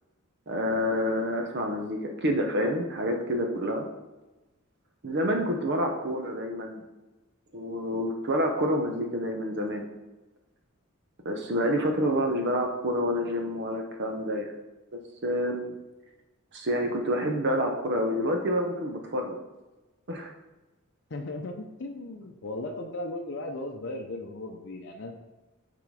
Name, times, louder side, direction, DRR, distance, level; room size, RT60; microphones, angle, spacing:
voice 1, 0.5-3.9 5.0-6.8 7.5-9.8 11.2-14.5 15.2-15.7 16.5-19.4 20.1-20.3, equal, 50° right, 3 dB, 0.8 m, -28 dB
voice 2, 21.1-25.1, left 2 dB, 55° left, 1 dB, 0.6 m, -36 dB
7.1 x 3.9 x 4.8 m, 1.1 s
head